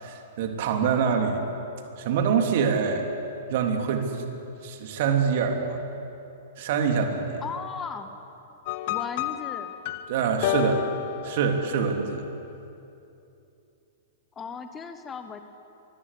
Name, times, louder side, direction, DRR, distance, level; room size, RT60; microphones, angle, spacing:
voice 1, 0.0-1.4 2.0-3.0 3.5-4.3 4.6-5.8 6.6-7.4 10.1-10.9 11.2-12.2, right 6 dB, 50° right, 4 dB, 3.2 m, -25 dB
voice 2, 7.4-8.1 8.9-9.8 14.3-15.4, left 6 dB, 20° left, 8 dB, 1.4 m, -36 dB
sound 1, 8.7-12.1, left 13 dB, 45° left, 1.1 m, -31 dB
24.5 x 21.5 x 8.5 m, 2.8 s
figure-of-eight pair, 105°, 0 cm